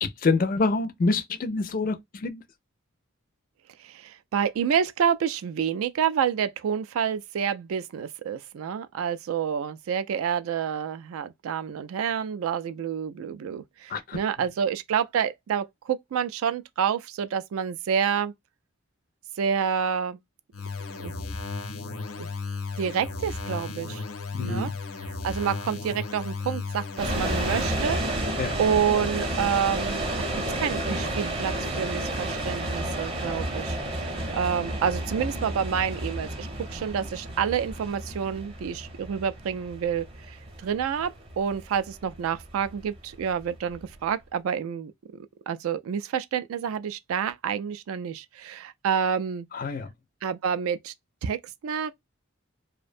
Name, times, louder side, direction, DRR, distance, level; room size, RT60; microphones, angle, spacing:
voice 1, 0.0-2.4 13.9-14.2 24.3-24.7 28.4-28.6 49.5-49.9, left 3 dB, 40° left, 0.4 m, -26 dB
voice 2, 3.8-18.3 19.4-20.2 21.0-21.1 22.2-22.3 22.8-24.0 24.4-24.7 25.2-40.4 40.6-44.9 45.5-49.5 50.2-50.9 51.2-51.4 51.6-51.9, right 7 dB, 80° right, 0.3 m, -28 dB
sound 1, 20.5-27.9, left 4 dB, 85° left, 0.6 m, -34 dB
sound 2, 27.0-44.0, right 1 dB, 25° right, 0.6 m, -31 dB
2.5 x 2.1 x 2.5 m
head